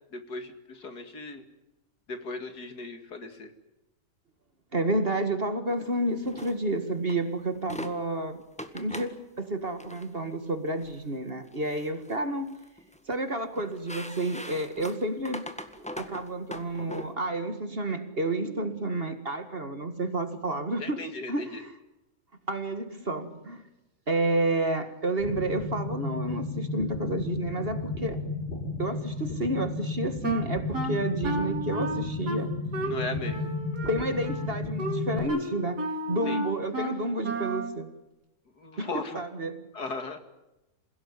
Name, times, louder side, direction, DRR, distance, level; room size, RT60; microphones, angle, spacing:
voice 1, 0.1-1.4 2.1-3.5 20.8-21.6 32.8-33.4 36.3-36.4 38.6-39.2 39.7-40.2, left 3 dB, 70° left, 2.8 m, -37 dB
voice 2, 4.7-8.4 8.7-12.6 13.1-21.7 22.5-23.7 24.1-28.2 28.8-32.6 33.9-37.9 38.8-39.7, right 2 dB, 35° right, 2.0 m, -30 dB
sound 1, 6.2-6.6 7.1-7.2 7.6-7.9 8.6-9.2 9.7-10.1 10.8-11.0 11.5-12.2 12.5-13.2 13.6-17.1, equal, 5° left, 1.6 m, -40 dB
sound 2, 25.2-35.2, left 3 dB, 35° left, 6.2 m, -33 dB
Wind instrument woodwind instrument, 30.2-37.8, right 2 dB, 70° right, 3.5 m, -33 dB
27.5 x 17.0 x 9.6 m
omnidirectional pair, 1.8 m